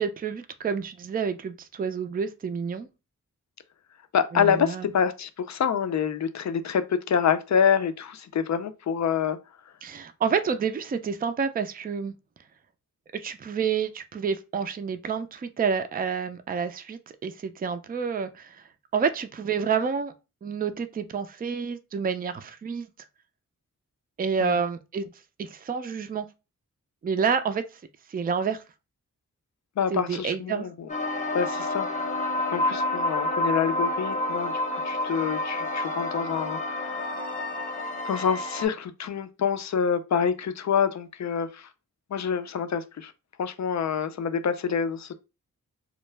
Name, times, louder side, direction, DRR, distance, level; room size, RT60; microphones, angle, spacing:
voice 1, 0.0-2.9 4.3-4.9 9.8-12.1 13.1-18.6 18.9-20.1 20.4-22.9 24.2-25.1 25.4-26.3 27.0-27.6 28.1-28.6 29.9-30.7, right 6 dB, 25° right, 0.4 m, -29 dB
voice 2, 4.1-9.4 24.4-24.6 29.8-30.9 31.3-37.2 38.0-41.7 42.1-43.1 43.4-45.1, left 7 dB, 55° left, 0.4 m, -27 dB
sound 1, 30.9-38.7, left 2 dB, 25° left, 0.7 m, -29 dB
2.2 x 2.1 x 3.2 m
cardioid pair, 45°, 34 cm